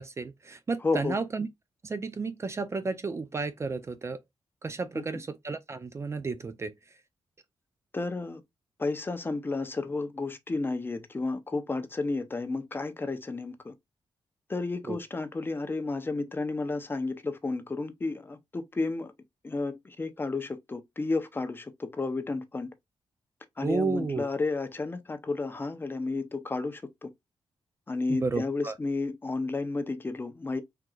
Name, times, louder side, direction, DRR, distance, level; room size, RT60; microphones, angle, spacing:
voice 1, 0.0-1.5 1.8-4.2 4.6-6.7 14.9-15.0 23.6-24.3 28.1-28.7, right 4 dB, 30° right, 0.5 m, -32 dB
voice 2, 0.8-1.2 4.9-5.2 7.9-8.4 8.8-13.7 14.5-19.1 19.4-22.7 23.6-27.1 27.9-30.6, left 3 dB, 25° left, 0.7 m, -32 dB
4.6 x 3.8 x 2.3 m
wide cardioid pair, 125°, 9 cm